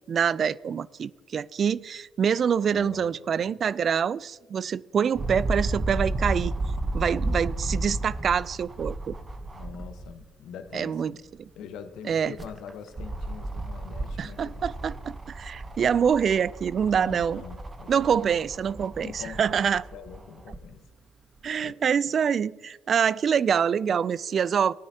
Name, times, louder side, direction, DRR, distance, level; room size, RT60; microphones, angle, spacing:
voice 1, 0.1-6.5 6.9-9.1 10.7-11.1 12.1-12.3 14.2-17.4 17.9-19.8 21.4-24.7, right 7 dB, 50° right, 0.3 m, -25 dB
voice 2, 2.7-3.6 6.9-7.2 9.5-11.2 11.5-15.1 17.0-18.3 19.0-20.9 21.6-22.1, left 7 dB, 75° left, 1.1 m, -44 dB
sound 1, 5.2-10.2 10.7-10.8 12.1-20.6 21.4-21.5, right 2 dB, 30° right, 0.9 m, -33 dB
18.0 x 9.7 x 2.8 m
supercardioid pair, 65°, 0 cm